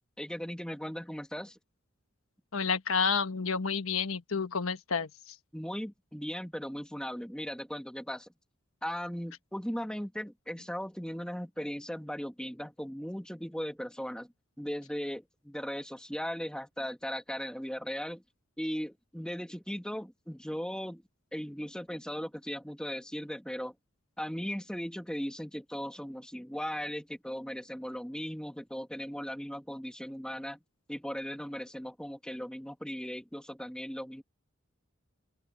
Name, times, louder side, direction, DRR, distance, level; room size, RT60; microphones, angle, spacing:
voice 1, 0.2-1.6 5.5-8.3 8.8-14.3 14.6-18.2 18.6-21.0 21.3-23.7 24.2-30.6 30.9-34.2, equal, 5° left, 2.3 m, -38 dB
voice 2, 2.5-5.3, left 5 dB, 85° left, 1.3 m, -30 dB
open air
head